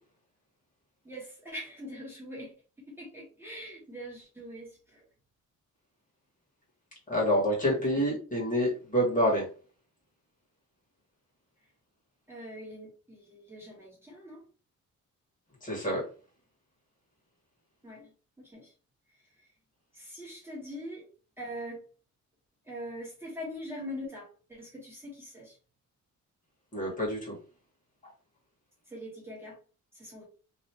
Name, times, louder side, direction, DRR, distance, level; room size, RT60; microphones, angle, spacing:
voice 1, 1.0-2.5 2.9-5.0 7.7-7.8 12.3-14.4 17.8-18.1 18.4-18.7 19.9-21.1 21.4-21.8 22.6-25.6 28.9-29.6 29.9-30.2, equal, 10° right, -5 dB, 1.2 m, -42 dB
voice 2, 7.1-9.5 15.6-16.0 26.7-27.4, equal, 25° left, -5 dB, 1.8 m, -27 dB
3.2 x 2.7 x 2.8 m, 0.38 s
wide cardioid pair, 160°, 31 cm